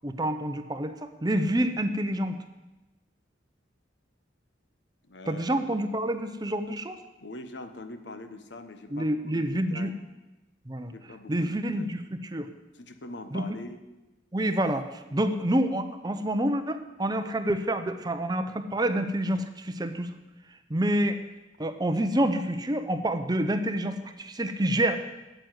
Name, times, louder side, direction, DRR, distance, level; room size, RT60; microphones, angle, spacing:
voice 1, 0.0-2.4 5.3-7.0 8.9-9.9 10.7-10.9 11.3-12.0 12.3-12.5 13.3-13.4 14.3-20.1 20.7-21.2 21.6-25.0, right 1 dB, 20° right, 9 dB, 0.7 m, -27 dB
voice 2, 5.0-5.7 7.2-10.0 10.9-12.0 12.7-13.8, left 2 dB, 65° left, 8 dB, 1.1 m, -43 dB
9.4 x 7.9 x 9.4 m, 1.1 s
head